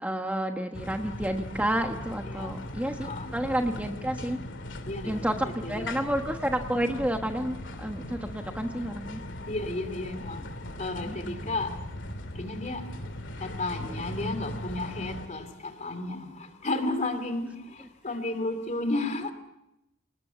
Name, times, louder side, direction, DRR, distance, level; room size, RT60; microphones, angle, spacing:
voice 1, 0.0-4.4 5.0-9.2 11.1-11.5, right 1 dB, 5° right, 1.2 m, -30 dB
sound 1, 0.7-15.3, left 1 dB, 65° left, 2.6 m, -39 dB
voice 2, 3.0-3.3 4.8-6.1 9.5-10.4 10.8-11.7 12.3-12.8 13.4-19.3, left 2 dB, 35° left, 2.8 m, -33 dB
28.5 x 19.5 x 7.0 m
head